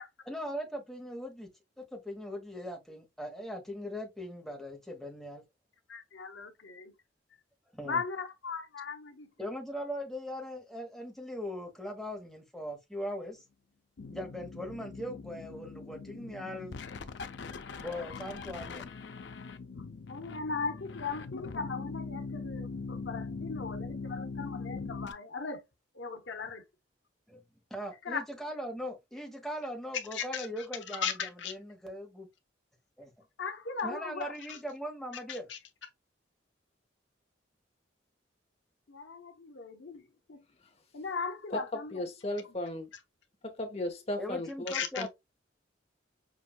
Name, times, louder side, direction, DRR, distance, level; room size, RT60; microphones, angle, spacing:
voice 1, 0.3-1.5 1.8-5.4 7.7-8.0 9.4-13.4 14.1-16.7 17.8-18.9 27.3-27.4 27.7-31.0 31.4-32.3 33.0-33.1 33.8-35.5 44.2-45.1, equal, ahead, 1.1 m, -40 dB
voice 2, 5.9-6.9 7.8-9.3 20.1-25.6 25.9-26.6 28.0-28.2 30.1-31.5 33.4-34.6 35.3-35.6 38.9-40.4 40.9-42.0 44.7-45.1, left 5 dB, 85° left, 0.9 m, -38 dB
sound 1, 14.0-25.1, left 4 dB, 70° left, 0.5 m, -41 dB
voice 3, 41.5-42.9 43.4-45.1, left 1 dB, 35° left, 1.1 m, -36 dB
6.1 x 2.6 x 2.2 m
head